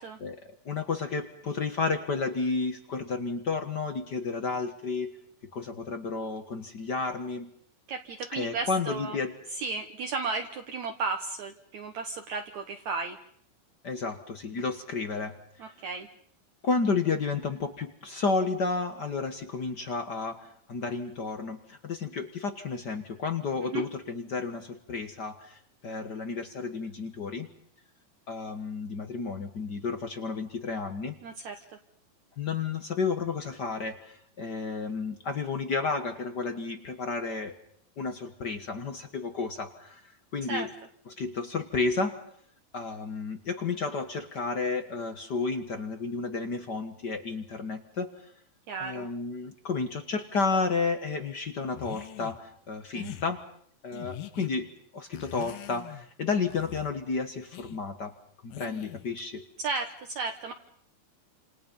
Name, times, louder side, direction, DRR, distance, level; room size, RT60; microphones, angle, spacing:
voice 1, 0.2-5.1 5.5-7.5 8.3-9.4 13.8-15.7 16.6-27.5 28.3-31.1 32.4-37.5 38.0-40.7 41.1-42.2 42.7-48.3 48.8-53.4 53.8-58.1 58.4-59.5, left 4 dB, 60° left, 8 dB, 1.1 m, -32 dB
voice 2, 7.9-9.2 9.6-13.2 15.6-16.1 23.6-23.8 31.2-31.6 40.5-40.7 48.7-49.1 59.6-60.5, right 4 dB, 60° right, 4 dB, 2.3 m, -34 dB
sound 1, 51.7-52.4 52.9-53.3 53.9-54.5 55.1-56.1 56.5-56.9 57.5-57.8 58.5-59.1, left 13 dB, 75° left, 2.8 m, -43 dB
29.0 x 27.5 x 5.5 m, 0.64 s
omnidirectional pair, 4.1 m